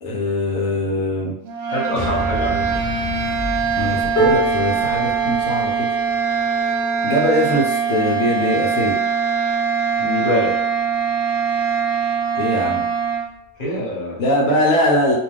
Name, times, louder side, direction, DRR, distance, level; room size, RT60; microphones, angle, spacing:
voice 1, 0.0-1.3 3.8-5.9 7.0-8.9 12.4-12.8 14.2-15.2, left 1 dB, 80° left, -2 dB, 1.0 m, -21 dB
sound 1, 1.4-13.3, right 6 dB, 75° right, 1.0 m, -22 dB
voice 2, 1.7-2.8 10.0-10.6 13.6-14.2, left 1 dB, 40° left, -6 dB, 1.2 m, -24 dB
sound 2, 2.0-6.4, right 1 dB, 30° right, 0.6 m, -31 dB
sound 3, 4.2-10.3 10.9-11.1 11.4-12.1 13.1-13.2, right 2 dB, 55° left, 1.1 m, -28 dB
2.5 x 2.3 x 3.3 m, 0.84 s
omnidirectional pair, 1.4 m